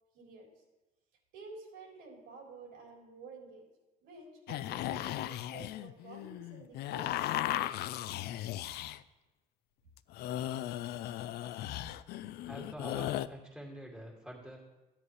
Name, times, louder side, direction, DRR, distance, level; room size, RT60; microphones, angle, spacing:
voice 1, 0.1-0.6 1.3-3.7 4.0-7.6, right 4 dB, 90° right, -2 dB, 3.9 m, -51 dB
sound 1, 4.5-9.0 10.0-13.3, left 13 dB, 75° left, 0.4 m, -37 dB
voice 2, 12.4-14.6, right 1 dB, 5° right, -2 dB, 2.3 m, -46 dB
14.0 x 9.8 x 3.2 m, 1.1 s
cardioid pair, 110°, 17 cm